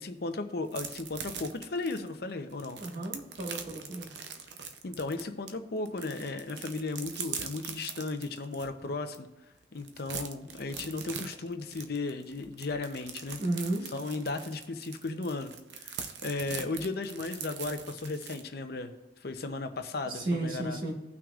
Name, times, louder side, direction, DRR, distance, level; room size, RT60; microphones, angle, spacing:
voice 1, 0.0-2.8 4.8-9.3 9.7-13.4 13.9-18.9 19.2-20.8, left 3 dB, 60° left, 7 dB, 0.7 m, -35 dB
sound 1, 0.7-5.5 5.9-8.7 9.1-9.2 9.5-18.4, right 6 dB, 75° right, 0.7 m, -42 dB
voice 2, 2.8-4.1 13.4-13.9 20.0-20.9, right 2 dB, 50° right, -1 dB, 1.8 m, -33 dB
16.5 x 6.0 x 2.5 m, 1.0 s
head